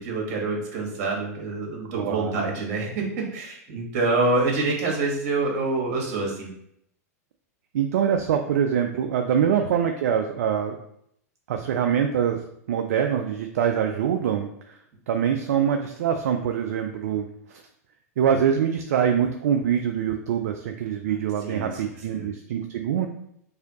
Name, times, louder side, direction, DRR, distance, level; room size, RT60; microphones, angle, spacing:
voice 1, 0.0-6.5 21.4-21.8 22.1-22.3, right 3 dB, 55° right, -1 dB, 1.5 m, -26 dB
voice 2, 2.0-2.5 7.7-10.8 11.5-12.4 12.7-14.8 15.1-17.6 18.2-23.1, right 8 dB, 70° right, 5 dB, 0.4 m, -24 dB
4.8 x 2.7 x 2.9 m, 0.73 s
hypercardioid pair, 110°, 9 cm